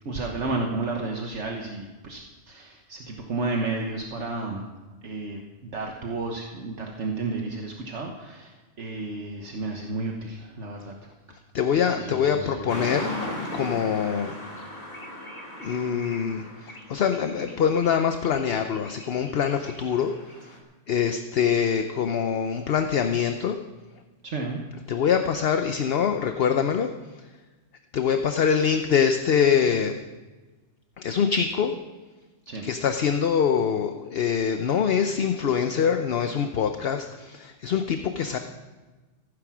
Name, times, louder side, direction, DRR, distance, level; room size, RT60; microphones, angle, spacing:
voice 1, 0.0-2.2 2.5-4.6 5.0-10.9 12.0-12.8 15.2-15.4 24.2-24.6 32.5-32.6, right 3 dB, 65° right, 1 dB, 1.5 m, -32 dB
voice 2, 11.5-13.1 13.5-14.4 15.6-20.1 20.4-20.5 20.9-23.6 24.9-27.3 27.9-30.0 31.0-31.7 32.6-38.4, left 7 dB, 55° left, 7 dB, 0.9 m, -24 dB
sound 1, 12.7-20.6, left 1 dB, 30° left, 2.6 m, -38 dB
15.5 x 9.9 x 6.1 m, 1.3 s
omnidirectional pair, 1.3 m